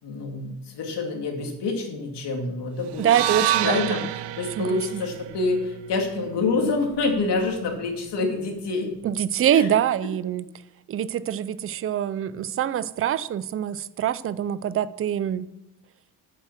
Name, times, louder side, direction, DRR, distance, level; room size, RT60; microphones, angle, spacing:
voice 1, 0.0-3.1 3.6-8.9 9.5-9.7, left 3 dB, 85° left, 2 dB, 2.5 m, -27 dB
voice 2, 3.0-3.8 4.6-5.0 9.0-10.5 10.9-15.5, right 10 dB, 35° right, 16 dB, 0.4 m, -24 dB
sound 1, 3.0-7.2, right 12 dB, 80° right, 0.7 m, -29 dB
8.9 x 7.1 x 7.3 m, 0.90 s
wide cardioid pair, 145°, 40 cm